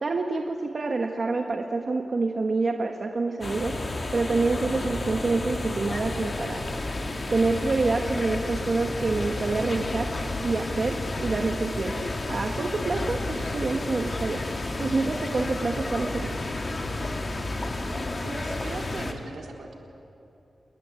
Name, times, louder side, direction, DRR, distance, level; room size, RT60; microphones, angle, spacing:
voice 1, 0.0-6.7 7.3-10.1 10.4-14.4 14.8-16.3, right 3 dB, 45° right, 3 dB, 1.5 m, -27 dB
sound 1, 3.4-19.1, left 2 dB, 35° left, 2.2 m, -31 dB
voice 2, 18.2-19.8, right 3 dB, 80° right, 1 dB, 3.8 m, -39 dB
28.5 x 21.5 x 9.6 m, 2.9 s
wide cardioid pair, 145°, 0 cm